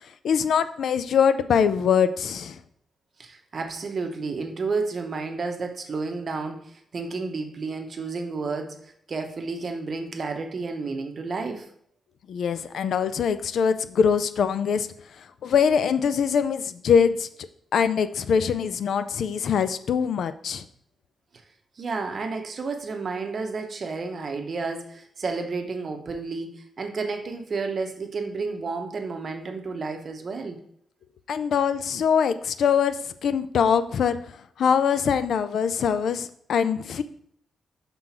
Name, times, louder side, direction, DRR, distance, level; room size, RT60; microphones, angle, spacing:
voice 1, 0.2-2.6 12.3-14.9 15.4-17.3 17.7-20.6 31.3-34.2 34.6-37.0, left 7 dB, 60° left, 0.4 m, -23 dB
voice 2, 3.2-11.7 21.8-30.6, right 4 dB, 35° right, 0.8 m, -31 dB
5.7 x 3.7 x 5.8 m
wide cardioid pair, 170°, 0 cm